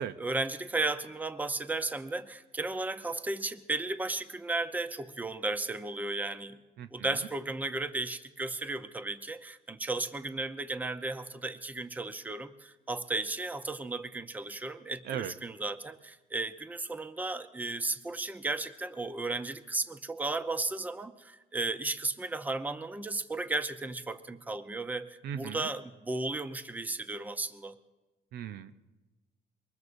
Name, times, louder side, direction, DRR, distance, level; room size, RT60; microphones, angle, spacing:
voice 1, 0.0-6.6 6.9-27.8, right 2 dB, 10° right, 11 dB, 0.6 m, -34 dB
voice 2, 25.2-25.7 28.3-28.8, right 9 dB, 70° right, 11 dB, 0.6 m, -36 dB
23.0 x 20.5 x 2.6 m, 1.1 s
cardioid pair, 110°, 17 cm